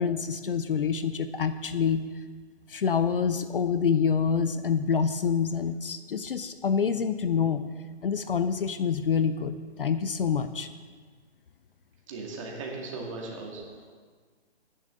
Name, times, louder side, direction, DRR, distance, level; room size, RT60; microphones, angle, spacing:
voice 1, 0.0-2.0 2.7-7.6 8.0-10.7, left 6 dB, 55° left, 11 dB, 0.6 m, -26 dB
voice 2, 12.1-13.9, right 3 dB, 30° right, -1 dB, 2.1 m, -38 dB
16.5 x 10.5 x 3.8 m, 1.5 s
hypercardioid pair, 165°, 34 cm